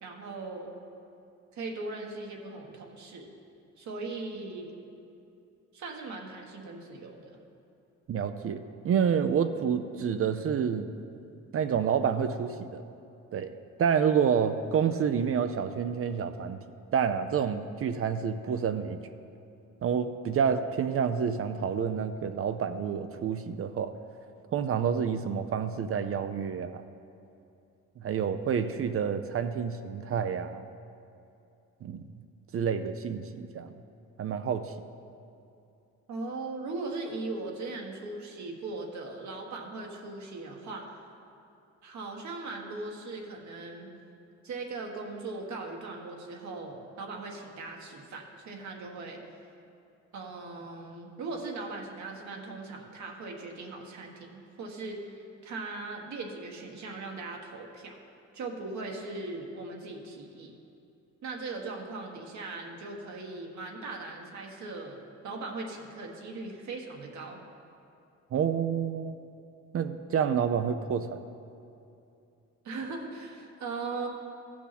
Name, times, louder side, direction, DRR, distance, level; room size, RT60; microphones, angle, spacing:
voice 1, 0.0-0.7 1.5-3.3 3.8-4.8 5.7-7.4 36.1-41.1 41.8-43.9 44.4-49.2 50.1-58.0 58.3-60.5 61.2-67.4 72.6-74.1, right 3 dB, 70° right, 1 dB, 1.5 m, -39 dB
voice 2, 8.1-10.9 11.5-12.8 13.3-13.5 13.8-16.6 16.9-19.0 19.8-24.0 24.5-26.8 28.0-30.6 31.8-32.0 32.5-33.7 34.2-34.7 68.3-69.2 69.7-71.2, right 7 dB, 50° right, 9 dB, 0.5 m, -28 dB
15.5 x 6.0 x 4.1 m, 2.7 s
cardioid pair, 90°, 30 cm